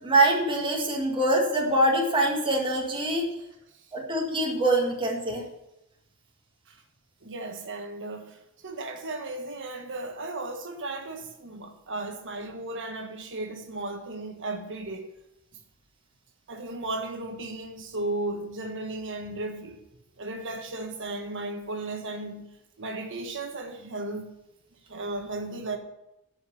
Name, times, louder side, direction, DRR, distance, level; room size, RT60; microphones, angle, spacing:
voice 1, 0.0-3.3 3.9-5.4, right 1 dB, 25° right, -1 dB, 1.8 m, -24 dB
voice 2, 7.2-8.3 8.6-15.1 16.5-19.8 20.2-22.5 22.8-24.3 24.9-25.8, right 2 dB, 55° right, 5 dB, 1.3 m, -35 dB
11.0 x 5.1 x 6.8 m, 0.89 s
head